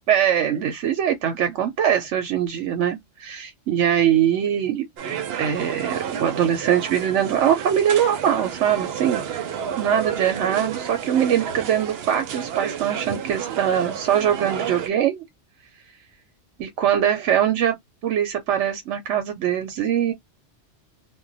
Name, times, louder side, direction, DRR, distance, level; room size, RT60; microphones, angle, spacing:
voice 1, 0.1-4.9 5.4-15.2 16.6-17.8 18.0-20.1, right 9 dB, 85° right, 1.0 m, -22 dB
sound 1, 5.0-14.9, right 8 dB, 65° right, 0.8 m, -31 dB
2.2 x 2.2 x 3.9 m
omnidirectional pair, 1.2 m